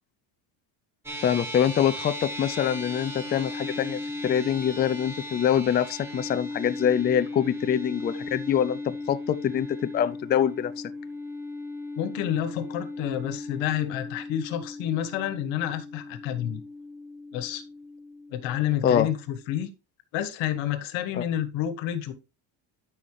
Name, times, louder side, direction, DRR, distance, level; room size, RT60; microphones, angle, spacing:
sound 1, 1.1-19.6, left 2 dB, 5° right, 2.2 m, -37 dB
voice 1, 1.2-10.7 18.8-19.1 21.1-21.2, left 9 dB, 25° left, 0.4 m, -25 dB
voice 2, 12.0-16.6 17.3-17.6 18.3-19.7 20.1-22.1, left 11 dB, 80° left, 1.5 m, -29 dB
12.5 x 5.7 x 3.2 m
cardioid pair, 140°, 45 cm